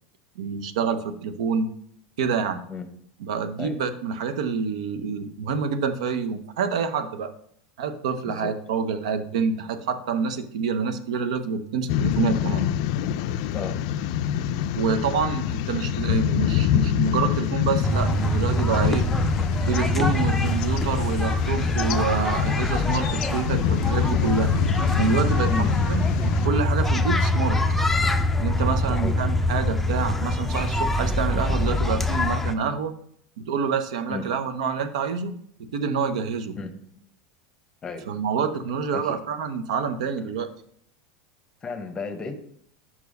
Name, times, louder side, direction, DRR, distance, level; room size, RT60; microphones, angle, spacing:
voice 1, 0.4-1.7 2.2-2.6 3.2-7.3 7.8-12.6 14.8-19.0 19.7-24.5 25.0-26.0 26.4-27.6 28.4-32.9 33.4-35.3 35.6-36.5 38.1-40.5, right 5 dB, 85° right, 10 dB, 0.7 m, -27 dB
sound 1, 11.9-26.5, left 10 dB, 65° left, 0.3 m, -26 dB
voice 2, 13.5-13.9 25.5-25.7 28.8-29.2 34.1-34.2 36.6-36.7 37.8-38.1 38.9-39.2 41.6-42.4, left 4 dB, 20° left, 8 dB, 0.9 m, -32 dB
sound 2, 17.8-32.5, left 1 dB, 5° left, 0.5 m, -24 dB
5.6 x 4.7 x 5.2 m, 0.65 s
supercardioid pair, 125°, 4 cm